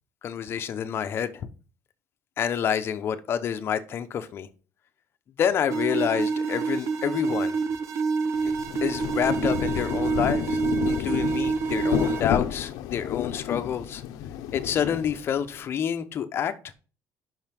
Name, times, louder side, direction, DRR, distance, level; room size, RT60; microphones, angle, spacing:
voice 1, 0.2-1.5 2.4-4.5 5.4-7.5 8.8-14.0 14.5-16.5, left 8 dB, 40° left, 0.8 m, -28 dB
sound 1, 5.7-12.2, right 4 dB, 55° right, 0.9 m, -27 dB
Rain, 8.3-15.6, left 10 dB, 85° left, 0.8 m, -31 dB
5.7 x 5.5 x 5.9 m
cardioid pair, 150°, 6 cm